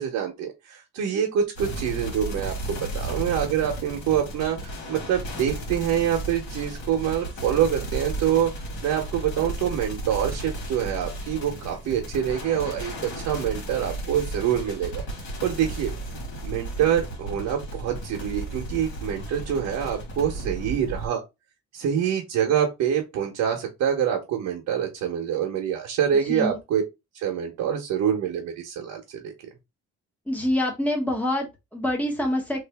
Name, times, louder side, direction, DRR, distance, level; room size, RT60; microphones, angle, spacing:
voice 1, 0.0-8.5 8.8-14.9 15.4-15.9 16.4-21.2 21.7-26.8 27.1-29.3, right 9 dB, 70° right, 1.0 m, -26 dB
sound 1, 1.6-21.1, right 1 dB, 75° left, 1.9 m, -34 dB
voice 2, 26.2-26.6 30.3-32.6, left 1 dB, 5° left, 1.0 m, -26 dB
3.3 x 2.7 x 3.4 m
cardioid pair, 170°, 30 cm